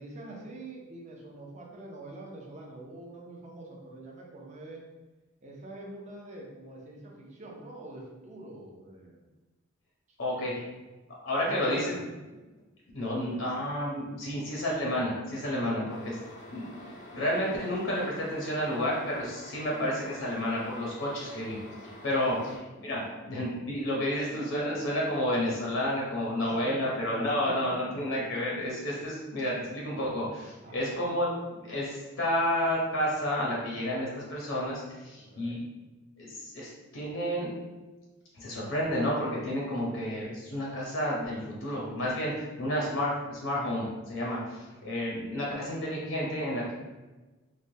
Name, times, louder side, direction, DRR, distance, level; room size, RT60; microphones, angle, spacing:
voice 1, 0.0-4.8 5.4-9.3 10.3-10.5 11.4-12.0 15.6-15.8 22.1-22.5 22.9-23.2 26.5-26.8 27.4-28.0 30.6-31.0 35.2-35.6, right 2 dB, 30° right, -2 dB, 0.5 m, -45 dB
voice 2, 10.2-10.5 11.2-11.9 12.9-16.1 16.5-21.6 22.0-22.5 22.8-23.0 23.3-31.3 31.6-35.6 36.2-37.5 38.3-46.7, left 1 dB, 65° left, -4 dB, 0.7 m, -31 dB
sound 1, 15.9-22.6, left 1 dB, 35° left, 0.3 m, -47 dB
3.2 x 2.1 x 2.7 m, 1.2 s
head